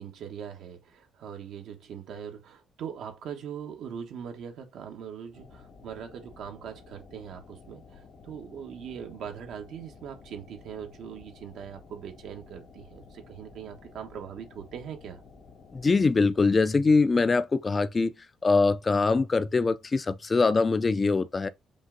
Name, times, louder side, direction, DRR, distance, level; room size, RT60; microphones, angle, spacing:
voice 1, 0.0-15.2, right 8 dB, 75° right, 1.1 m, -41 dB
sound 1, 5.3-15.9, left 4 dB, 60° left, 1.5 m, -52 dB
voice 2, 15.7-18.1 18.4-21.5, left 4 dB, 30° left, 0.5 m, -23 dB
5.4 x 2.5 x 3.8 m
cardioid pair, 90°, 0 cm